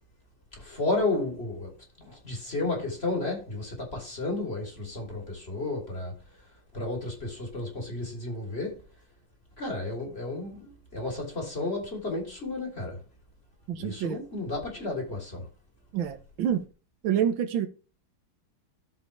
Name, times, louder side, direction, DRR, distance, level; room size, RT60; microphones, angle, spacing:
voice 1, 0.6-6.2 6.7-8.8 9.6-13.0 13.8-15.5, left 2 dB, 30° left, 3.4 m, -32 dB
voice 2, 13.7-14.2 15.9-16.6 17.0-17.7, right 9 dB, 90° right, 1.7 m, -27 dB
13.0 x 5.4 x 3.2 m
omnidirectional pair, 2.1 m